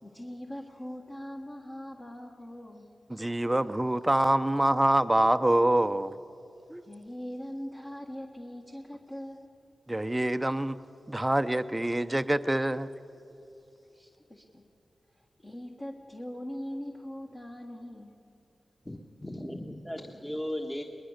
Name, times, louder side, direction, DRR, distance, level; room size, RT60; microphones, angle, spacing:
voice 1, 0.0-2.9 6.8-9.5 13.9-14.6 15.2-18.1, equal, 30° left, 1.6 m, -41 dB
voice 2, 3.1-6.1 6.7-6.8 9.9-10.8 11.1-12.9, right 1 dB, 15° right, 0.7 m, -25 dB
voice 3, 18.8-20.8, left 1 dB, 10° left, 1.4 m, -36 dB
22.0 x 21.0 x 6.6 m
wide cardioid pair, 80°, 0 cm